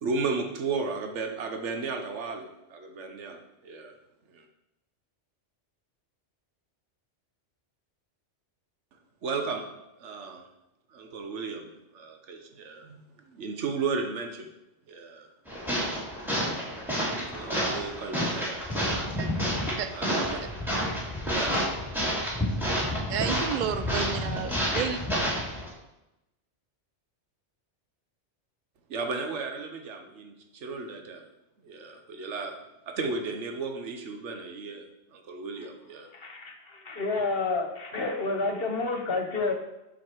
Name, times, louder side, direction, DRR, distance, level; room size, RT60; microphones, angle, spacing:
voice 1, 0.0-4.0 4.3-4.5 9.2-9.7 10.0-10.4 10.9-14.5 14.9-15.3 16.8-16.9 17.3-18.7 19.9-20.4 21.3-21.6 22.0-22.2 28.9-31.3 31.6-32.5 32.9-34.9 35.1-36.1, right 4 dB, 80° right, 5 dB, 1.3 m, -34 dB
sound 1, 15.5-25.7, equal, ahead, 2.8 m, -29 dB
voice 2, 23.1-25.0, right 8 dB, 50° right, 10 dB, 0.7 m, -31 dB
voice 3, 36.1-39.5, left 3 dB, 55° left, 4 dB, 1.4 m, -29 dB
7.6 x 6.9 x 4.6 m, 0.93 s
omnidirectional pair, 1.2 m